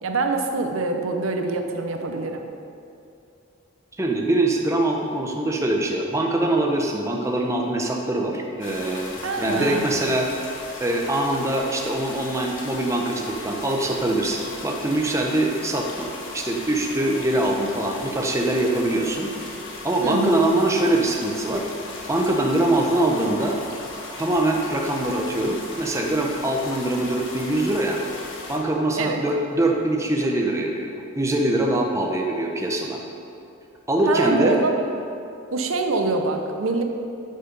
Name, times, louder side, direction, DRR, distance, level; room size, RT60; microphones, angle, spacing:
voice 1, 0.0-2.4 9.2-9.9 20.0-20.3 29.0-29.2 34.1-34.8 35.5-36.8, right 3 dB, 85° right, 5 dB, 0.8 m, -24 dB
voice 2, 4.0-10.3 10.8-19.3 19.8-21.6 22.1-23.6 24.2-28.0 28.5-33.0 33.9-34.6, right 1 dB, 15° right, 0 dB, 0.8 m, -23 dB
sound 1, 8.6-28.6, left 2 dB, 65° left, 1.4 m, -38 dB
10.0 x 5.6 x 5.3 m, 2.6 s
head